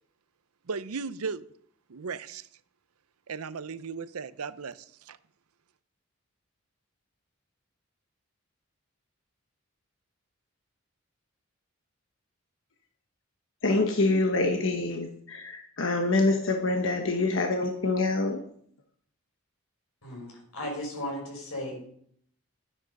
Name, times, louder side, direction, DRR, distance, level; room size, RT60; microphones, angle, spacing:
voice 1, 0.7-1.5 1.9-2.5 3.3-5.2, right 5 dB, 90° right, 16 dB, 0.6 m, -36 dB
voice 2, 13.6-18.4, left 2 dB, 60° left, 4 dB, 1.2 m, -26 dB
voice 3, 20.0-22.0, left 1 dB, 90° left, 1 dB, 5.3 m, -36 dB
12.0 x 10.0 x 5.3 m, 0.64 s
head